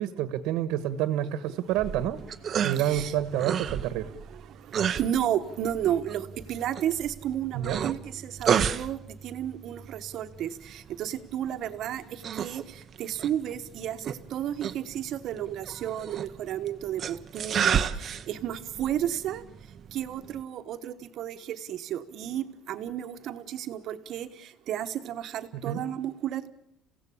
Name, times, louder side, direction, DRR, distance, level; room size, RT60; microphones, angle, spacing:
voice 1, 0.0-2.2 2.6-4.1 7.5-7.8 25.5-25.9, right 11 dB, 80° right, 13 dB, 1.4 m, -28 dB
sound 1, 1.7-20.4, right 8 dB, 30° right, 0.9 m, -33 dB
voice 2, 2.6-3.1 4.0-26.5, right 10 dB, 45° right, 9 dB, 1.3 m, -33 dB
29.0 x 16.5 x 8.6 m, 0.80 s
cardioid pair, 180°, 0 cm